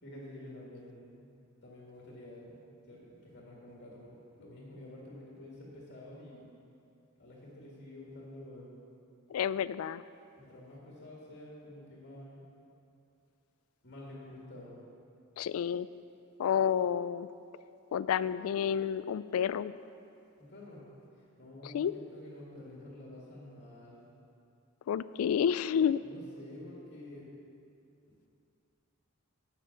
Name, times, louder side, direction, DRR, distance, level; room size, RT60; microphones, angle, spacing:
voice 1, 0.0-1.3 1.6-6.5 7.2-8.8 10.4-12.4 13.8-14.8 20.4-20.9 21.1-24.0 26.0-27.3 28.1-28.3, left 1 dB, 55° left, -5 dB, 2.0 m, -49 dB
voice 2, 9.3-10.0 15.4-15.9 16.4-17.3 17.9-19.7 21.6-21.9 24.9-26.0, left 8 dB, 85° left, 17 dB, 0.3 m, -30 dB
8.6 x 7.6 x 6.6 m, 2.6 s
head